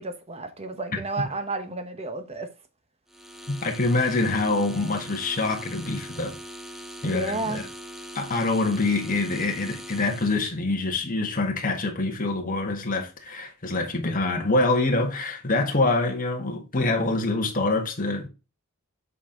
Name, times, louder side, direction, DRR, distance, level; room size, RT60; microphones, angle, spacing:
voice 1, 0.0-2.5 7.0-7.6, right 3 dB, 30° right, 1.1 m, -32 dB
sound 1, 3.1-10.6, equal, ahead, 0.7 m, -41 dB
voice 2, 3.5-6.4 7.0-7.7 8.1-18.3, left 2 dB, 40° left, 1.6 m, -25 dB
7.3 x 4.4 x 3.8 m
head